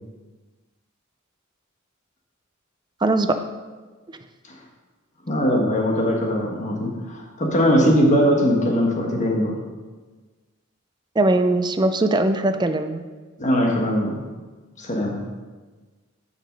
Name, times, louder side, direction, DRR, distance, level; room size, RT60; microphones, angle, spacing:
voice 1, 3.0-3.4 11.2-13.0, right 2 dB, 20° right, 8 dB, 0.5 m, -20 dB
voice 2, 5.3-9.6 13.4-14.2 14.8-15.2, equal, 35° left, 0 dB, 1.4 m, -20 dB
7.9 x 5.9 x 5.3 m, 1.3 s
head